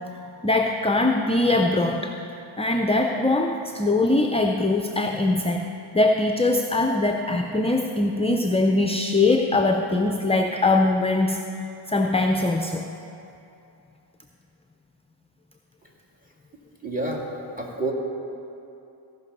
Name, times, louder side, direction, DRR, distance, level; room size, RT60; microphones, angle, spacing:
voice 1, 0.4-2.1 2.6-5.7 5.9-11.4 11.9-12.8, left 2 dB, 15° left, 4 dB, 0.5 m, -22 dB
voice 2, 16.8-17.2 17.6-17.9, right 2 dB, 15° right, -1 dB, 2.2 m, -28 dB
16.5 x 6.1 x 5.4 m, 2.7 s
cardioid pair, 60°, 49 cm